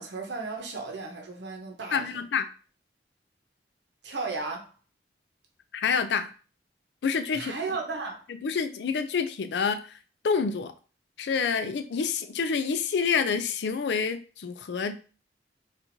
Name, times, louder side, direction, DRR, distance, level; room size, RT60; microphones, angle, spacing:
voice 1, 0.0-2.2 4.0-4.7 7.3-8.2, right 4 dB, 80° right, 0.8 m, -35 dB
voice 2, 1.9-2.5 5.7-6.3 7.0-7.5 8.4-9.8 10.2-10.7 11.2-15.0, left 6 dB, 75° left, 0.4 m, -27 dB
4.3 x 2.5 x 2.6 m
head